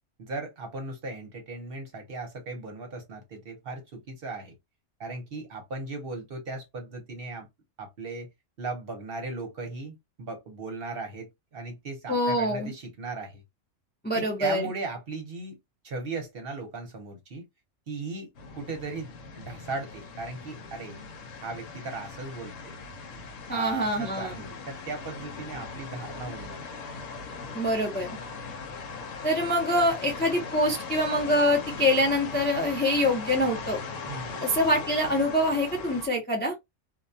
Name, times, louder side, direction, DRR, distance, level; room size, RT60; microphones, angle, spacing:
voice 1, 0.2-4.5 5.0-7.5 7.8-8.3 8.6-13.4 14.1-15.6 15.8-17.4 17.9-18.3 18.5-21.0 21.4-22.8 23.5-26.6 34.1-34.5, right 3 dB, 55° right, 0.9 m, -37 dB
voice 2, 12.1-12.7 14.0-14.7 23.5-24.3 27.5-28.2 29.2-33.8 34.4-36.5, left 1 dB, 10° left, 0.5 m, -25 dB
sound 1, 18.3-36.1, left 4 dB, 80° left, 1.0 m, -39 dB
2.3 x 2.2 x 2.5 m
omnidirectional pair, 1.3 m